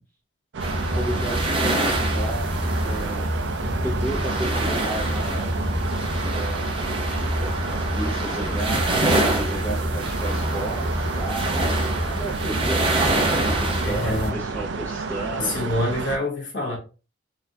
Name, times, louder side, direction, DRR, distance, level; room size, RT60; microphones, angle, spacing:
sound 1, 0.5-16.2, right 4 dB, 65° right, 0.4 m, -31 dB
voice 1, 0.6-3.2 3.6-5.4 6.3-6.9 7.7-11.5 12.0-15.5, right 2 dB, 10° left, 0.7 m, -33 dB
sound 2, 0.6-14.3, right 1 dB, 25° right, 0.8 m, -25 dB
voice 2, 13.8-14.4 15.4-16.8, left 1 dB, 70° left, 1.3 m, -26 dB
4.0 x 2.6 x 2.7 m
head